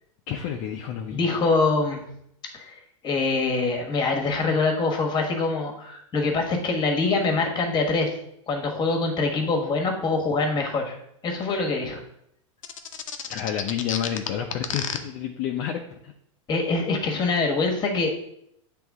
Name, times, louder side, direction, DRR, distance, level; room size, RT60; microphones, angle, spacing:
voice 1, 0.3-1.2 13.3-16.1, left 9 dB, 45° left, 2 dB, 0.6 m, -30 dB
voice 2, 1.1-2.0 2.5-2.7 3.0-8.1 8.5-11.0 11.2-12.0 16.5-18.1, left 3 dB, 25° left, 2 dB, 1.4 m, -24 dB
sound 1, 12.6-15.0, left 8 dB, 85° left, 0.7 m, -30 dB
7.8 x 3.4 x 3.6 m, 0.74 s
hypercardioid pair, 115°, 16 cm